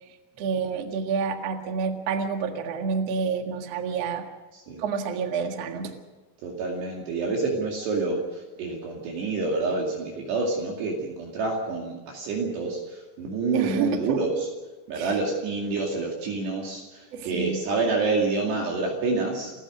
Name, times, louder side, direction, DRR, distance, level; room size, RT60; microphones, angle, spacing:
voice 1, 0.4-4.2 4.8-5.9 13.5-14.2 14.9-15.2 17.1-17.6, right 5 dB, 80° right, 5 dB, 1.4 m, -28 dB
voice 2, 6.4-14.5 14.9-19.5, right 3 dB, 60° right, -1 dB, 4.2 m, -28 dB
29.0 x 14.5 x 6.4 m, 1.2 s
omnidirectional pair, 6.0 m